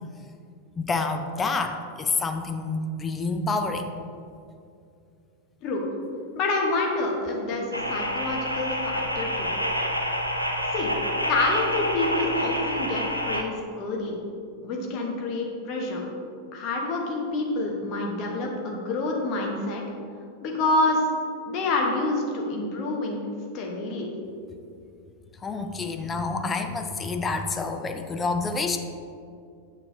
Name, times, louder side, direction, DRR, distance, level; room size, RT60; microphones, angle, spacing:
voice 1, 0.8-3.9 25.4-28.8, left 3 dB, 20° left, 6 dB, 0.4 m, -28 dB
voice 2, 6.3-9.5 10.7-10.9 11.3-14.2 14.6-16.0 16.5-19.8 20.4-21.0 21.4-23.2 23.5-24.1, left 2 dB, 40° left, 0 dB, 1.1 m, -27 dB
sound 1, 7.7-13.4, equal, 90° right, 0.5 m, -28 dB
6.9 x 6.8 x 2.8 m, 2.4 s
figure-of-eight pair, 90°, 0 cm